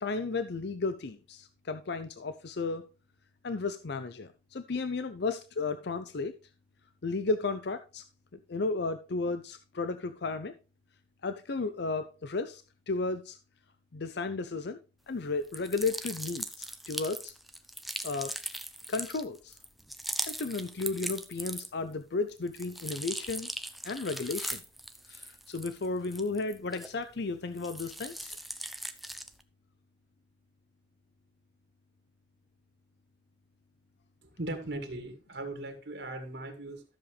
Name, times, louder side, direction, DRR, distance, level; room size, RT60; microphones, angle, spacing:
voice 1, 0.0-2.9 3.4-6.3 7.0-8.0 8.5-10.5 11.2-13.4 13.9-14.8 15.1-17.3 18.0-18.3 18.9-19.6 20.2-23.5 23.8-24.6 25.1-28.4, left 3 dB, 65° left, 0.6 m, -34 dB
sound 1, 15.5-21.9 22.3-27.2 27.5-29.4, right 1 dB, ahead, 0.7 m, -39 dB
voice 2, 34.3-36.8, right 2 dB, 65° right, 2.2 m, -38 dB
13.5 x 7.2 x 3.2 m
head